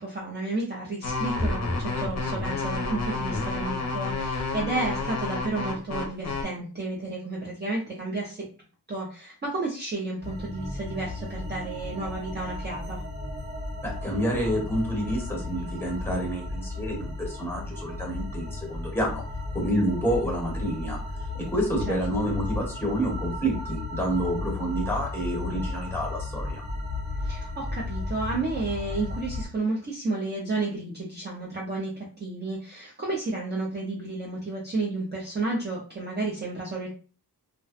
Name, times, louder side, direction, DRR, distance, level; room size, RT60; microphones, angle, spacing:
voice 1, 0.0-8.5 8.9-13.0 21.9-22.3 27.2-36.9, right 2 dB, 25° right, -4 dB, 0.5 m, -32 dB
sound 1, 1.0-6.4, left 3 dB, 45° left, 0.6 m, -29 dB
sound 2, 10.2-29.5, left 2 dB, 60° right, 1.2 m, -34 dB
voice 2, 13.8-19.2 19.5-21.0 21.5-26.6, equal, 5° left, -1 dB, 1.0 m, -28 dB
2.5 x 2.1 x 2.4 m, 0.38 s
wide cardioid pair, 120°, 39 cm